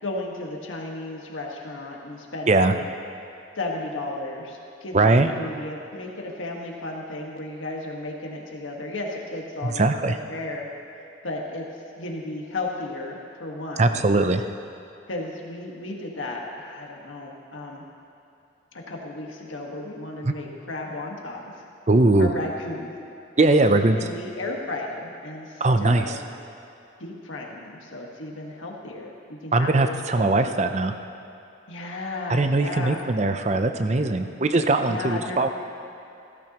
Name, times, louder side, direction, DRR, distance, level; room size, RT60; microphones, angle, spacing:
voice 1, 0.0-2.8 3.6-10.7 11.2-11.7 12.0-14.0 15.1-17.8 18.7-21.5 22.2-22.9 23.4-26.2 27.0-30.5 31.7-33.0 34.9-35.4, left 2 dB, 90° left, 0 dB, 1.6 m, -34 dB
voice 2, 4.9-5.3 9.6-10.2 13.8-14.4 20.2-20.3 21.9-22.3 23.4-24.0 25.6-26.2 29.5-30.9 32.3-35.5, right 2 dB, 35° right, 8 dB, 0.5 m, -20 dB
15.5 x 13.5 x 3.0 m, 2.8 s
head